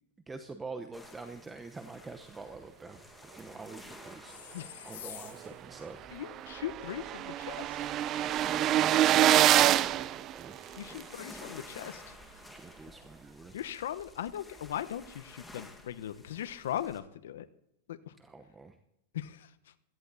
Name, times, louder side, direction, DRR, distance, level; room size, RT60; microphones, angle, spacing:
voice 1, 0.3-3.0 3.3-4.4 4.8-6.0 8.2-10.6 12.5-13.6 18.2-18.8, right 3 dB, 10° right, 7 dB, 0.9 m, -46 dB
sound 1, 0.9-17.0, left 2 dB, 5° left, 1.8 m, -53 dB
sound 2, 4.2-5.6 9.1-9.9, left 13 dB, 65° left, 1.5 m, -46 dB
voice 2, 4.5-4.9 6.1-7.8 10.8-12.2 13.5-17.5 17.9-18.0 19.1-19.5, left 11 dB, 80° left, 11 dB, 1.0 m, -39 dB
sound 3, 5.4-5.5 5.9-6.0 6.1-11.0, right 12 dB, 30° right, 0.5 m, -26 dB
17.0 x 14.0 x 4.1 m, 0.79 s
supercardioid pair, 155°, 0 cm